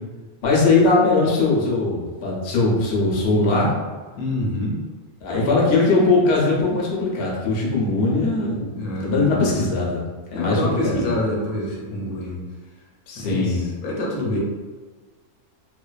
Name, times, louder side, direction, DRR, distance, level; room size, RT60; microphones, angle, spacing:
voice 1, 0.4-3.7 5.2-10.0 10.3-11.1 13.1-13.7, left 3 dB, 60° left, -4 dB, 0.6 m, -20 dB
voice 2, 4.2-4.8 5.3-5.6 8.8-9.6 10.3-12.4 13.1-14.4, left 1 dB, 80° left, -2 dB, 1.0 m, -26 dB
2.5 x 2.2 x 2.2 m, 1.4 s
omnidirectional pair, 1.6 m